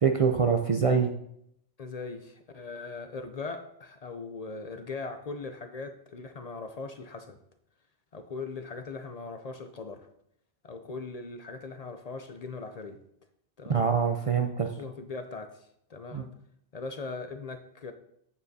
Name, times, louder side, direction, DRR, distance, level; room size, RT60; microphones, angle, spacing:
voice 1, 0.0-1.1 13.7-14.7 16.1-16.2, right 6 dB, 60° right, 4 dB, 0.3 m, -24 dB
voice 2, 1.8-7.4 8.1-10.1 10.6-13.0 13.6-13.9 14.7-16.3 16.7-17.9, left 4 dB, 50° left, 7 dB, 0.5 m, -40 dB
8.9 x 6.9 x 2.7 m, 0.72 s
omnidirectional pair, 1.2 m